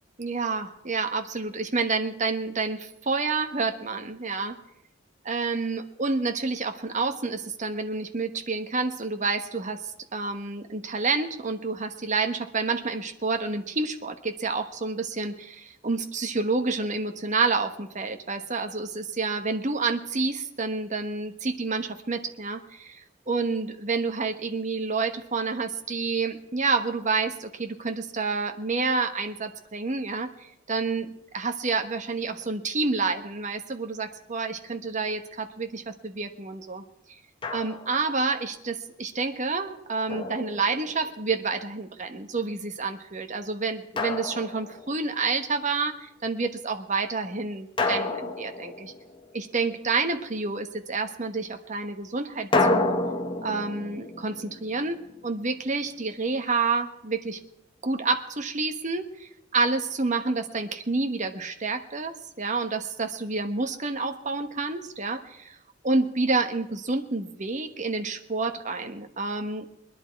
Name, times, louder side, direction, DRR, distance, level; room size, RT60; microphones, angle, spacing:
voice 1, 0.2-4.5 5.2-36.8 37.5-48.9 49.3-53.0 53.4-55.0 55.2-57.4 57.8-65.6 65.8-69.7, right 4 dB, 40° right, 6 dB, 1.1 m, -29 dB
Drum, 37.4-38.1 40.1-41.2 44.0-45.1 47.8-49.4 52.5-55.5, left 2 dB, 25° left, 0.9 m, -29 dB
21.0 x 11.0 x 4.6 m, 0.81 s
head